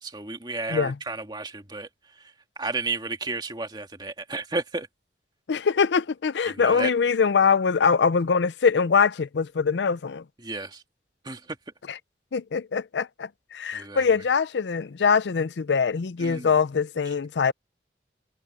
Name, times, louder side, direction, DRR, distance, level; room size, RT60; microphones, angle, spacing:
voice 1, 0.0-1.9 2.2-2.3 2.6-4.9 6.5-6.9 10.4-10.8 11.2-11.6 13.7-14.0 16.2-16.5, right 3 dB, 25° right, 2.2 m, -32 dB
voice 2, 5.5-10.2 11.9-12.0 12.3-17.5, left 5 dB, 85° left, 0.5 m, -23 dB
head